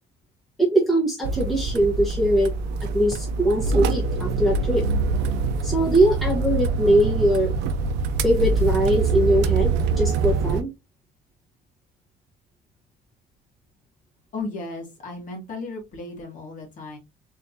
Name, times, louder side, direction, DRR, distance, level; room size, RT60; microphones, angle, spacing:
voice 1, 0.6-2.5 2.9-4.8 5.6-7.5 8.2-10.7, right 1 dB, ahead, -3 dB, 1.3 m, -21 dB
sound 1, 1.2-10.6, right 4 dB, 90° right, 0.5 m, -24 dB
voice 2, 14.3-17.0, left 3 dB, 50° left, 0 dB, 2.1 m, -35 dB
3.7 x 3.5 x 2.7 m, 0.23 s
cardioid pair, 110°, 17 cm